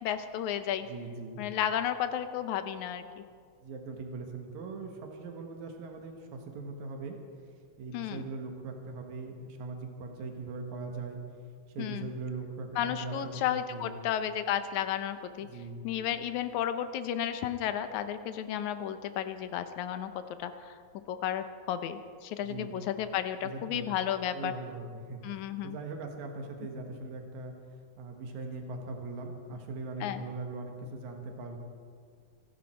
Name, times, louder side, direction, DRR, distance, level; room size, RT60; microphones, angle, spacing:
voice 1, 0.0-0.9 1.4-3.2 7.9-8.3 11.8-12.1 12.8-15.5 15.8-20.1 20.4-20.7 21.1-24.5 25.2-25.8 30.0-30.2, left 10 dB, 85° left, 10 dB, 2.2 m, -33 dB
voice 2, 0.8-1.4 3.6-7.2 7.8-11.2 11.7-14.0 15.4-15.9 22.4-22.7 23.4-23.9 24.3-27.5 28.0-31.6, right 3 dB, 75° right, 3 dB, 2.9 m, -40 dB
25.5 x 10.5 x 4.5 m, 2.1 s
omnidirectional pair, 3.3 m